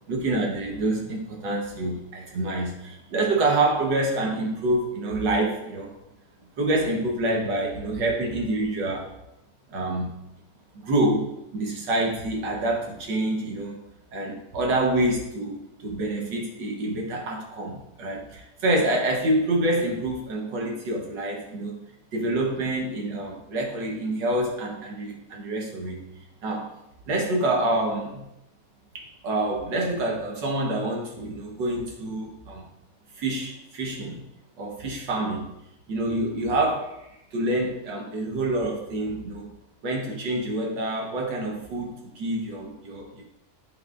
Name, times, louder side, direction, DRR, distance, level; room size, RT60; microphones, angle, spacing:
voice 1, 0.1-5.9 6.6-9.1 9.7-10.1 10.7-13.8 14.1-21.8 22.1-26.0 26.4-26.7 27.1-28.2 28.9-32.6 33.1-34.2 34.6-35.5 35.9-39.5 39.8-43.2, right 2 dB, 80° right, -1 dB, 1.8 m, -27 dB
10.5 x 4.0 x 2.5 m, 0.88 s
omnidirectional pair, 1.9 m